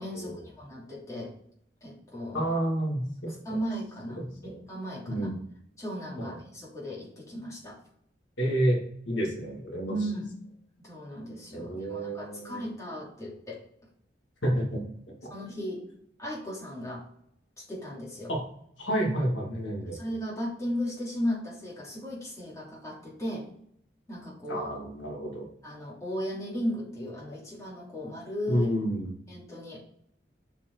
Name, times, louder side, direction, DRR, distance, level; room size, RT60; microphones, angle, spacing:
voice 1, 0.0-1.3 1.8-2.5 3.3-5.3 5.8-7.8 9.8-10.3 10.8-13.6 15.3-15.9 16.2-17.0 17.6-18.3 19.9-23.5 24.1-24.9 25.6-28.7 29.3-29.8, equal, 15° left, -6 dB, 3.0 m, -36 dB
voice 2, 2.3-3.0 4.1-4.6 5.1-5.3 6.2-6.4 8.4-8.8 9.1-9.9 11.5-12.7 14.4-14.8 18.3-18.4 18.8-20.0 24.5-25.5 28.5-29.1, right 1 dB, 85° left, -1 dB, 2.6 m, -29 dB
7.3 x 5.4 x 4.7 m, 0.67 s
head